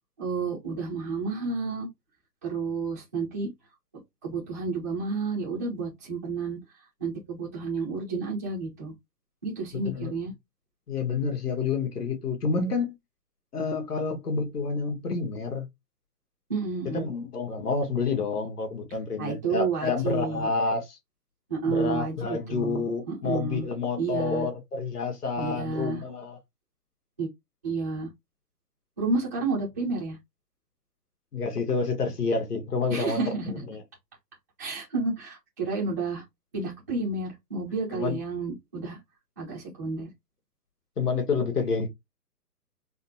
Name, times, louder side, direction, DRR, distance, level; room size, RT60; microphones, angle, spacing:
voice 1, 0.2-1.9 2.4-3.5 4.2-6.6 7.0-8.9 9.4-10.3 16.5-17.1 19.2-20.5 21.5-23.7 24.0-24.5 25.4-26.0 27.2-27.3 27.6-28.1 29.0-30.2 32.9-33.6 34.6-36.2 36.5-39.0 39.4-40.1, right 4 dB, 10° right, 0.5 m, -30 dB
voice 2, 10.9-12.9 13.5-15.7 16.9-21.0 21.7-26.4 31.3-33.2 33.7-33.8 37.9-38.2 41.0-41.9, left 4 dB, 65° left, 1.7 m, -28 dB
4.1 x 2.1 x 2.7 m
figure-of-eight pair, 135°, 49 cm